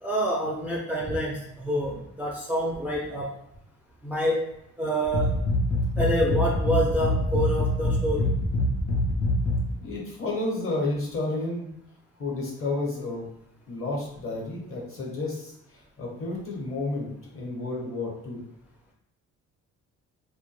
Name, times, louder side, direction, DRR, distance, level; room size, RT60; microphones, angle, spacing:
voice 1, 0.0-3.3 4.0-4.5 4.8-5.3 6.0-8.3, equal, 5° right, -3 dB, 0.4 m, -27 dB
sound 1, 5.0-9.7, left 1 dB, 65° left, 0.6 m, -25 dB
voice 2, 9.8-11.7 12.2-13.3 13.7-18.4, left 2 dB, 45° left, -3 dB, 1.1 m, -31 dB
2.2 x 2.1 x 3.0 m, 0.79 s
cardioid pair, 90°, 30 cm